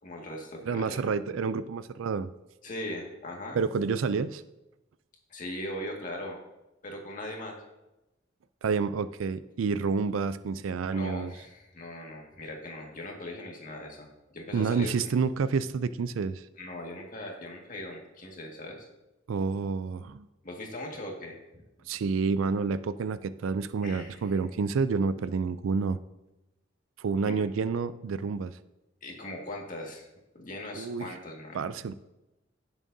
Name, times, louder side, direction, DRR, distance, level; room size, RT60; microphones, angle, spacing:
voice 1, 0.0-1.0 2.6-3.6 5.3-6.4 6.8-7.6 10.9-14.1 14.3-14.9 16.6-18.9 20.4-21.3 23.8-24.3 27.2-27.4 29.0-30.1 30.3-31.6, left 1 dB, 45° left, 0 dB, 1.9 m, -39 dB
voice 2, 0.6-2.3 3.5-4.4 8.6-11.3 14.5-16.5 19.3-20.3 21.9-26.0 27.0-28.5 30.7-31.1 31.5-31.9, right 5 dB, 85° right, 14 dB, 0.4 m, -29 dB
16.5 x 7.2 x 2.7 m, 0.98 s
head